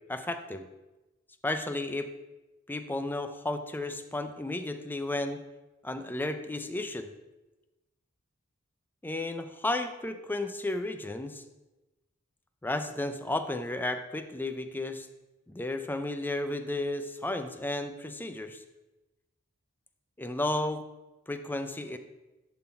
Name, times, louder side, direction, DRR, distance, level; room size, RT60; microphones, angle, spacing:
voice 1, 0.1-0.7 1.4-2.1 2.7-5.4 5.8-7.1 9.0-11.4 12.6-15.1 15.5-18.6 20.2-20.8 21.3-22.0, left 2 dB, 10° left, 8 dB, 0.4 m, -33 dB
11.0 x 3.9 x 4.3 m, 1.1 s
head